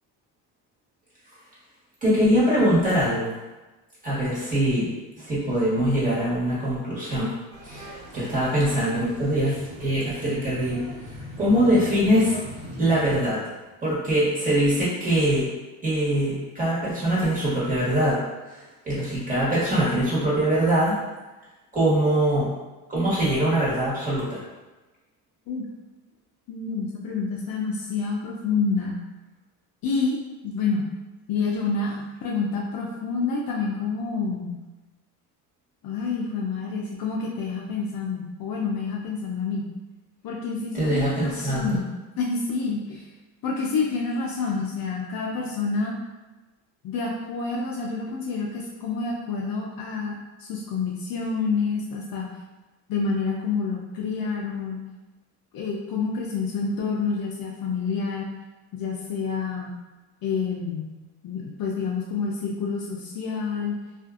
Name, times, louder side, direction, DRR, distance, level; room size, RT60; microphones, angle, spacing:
voice 1, 2.0-3.3 4.0-7.4 7.6-12.4 12.8-13.4 13.8-15.5 15.8-21.0 21.7-22.5 22.9-24.4 40.7-41.8, right 1 dB, 20° right, -8 dB, 1.3 m, -23 dB
sound 1, 7.5-13.2, left 1 dB, 75° right, 1.1 m, -40 dB
voice 2, 26.5-29.0 29.8-30.2 30.4-30.8 31.3-34.5 35.8-39.7 40.2-41.9 42.2-43.0 43.4-45.9 46.8-52.3 52.9-54.8 55.5-58.3 58.7-59.7 60.2-60.9 61.2-63.8, left 4 dB, 55° left, -2 dB, 0.5 m, -28 dB
2.5 x 2.4 x 2.4 m, 1.1 s
cardioid pair, 100°, 44 cm